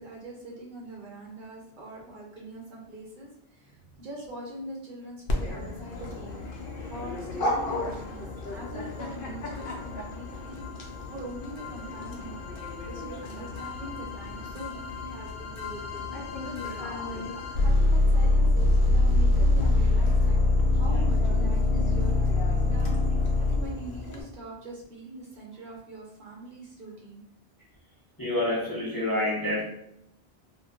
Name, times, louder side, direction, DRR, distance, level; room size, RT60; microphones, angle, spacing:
voice 1, 0.0-6.4 6.9-10.6 11.1-16.0 16.4-16.8 17.1-17.3 17.6-20.4 20.7-23.0 23.4-27.2, right 1 dB, 55° right, -3 dB, 0.8 m, -43 dB
Dog, 5.3-24.2, left 2 dB, 65° left, 0.7 m, -37 dB
sound 1, 7.8-7.9 8.6-8.7 9.0-9.1 9.6-24.0, left 2 dB, 90° left, 0.9 m, -25 dB
voice 2, 28.2-29.6, left 1 dB, 25° left, -6 dB, 0.5 m, -27 dB
2.2 x 2.0 x 3.6 m, 0.76 s
omnidirectional pair, 1.1 m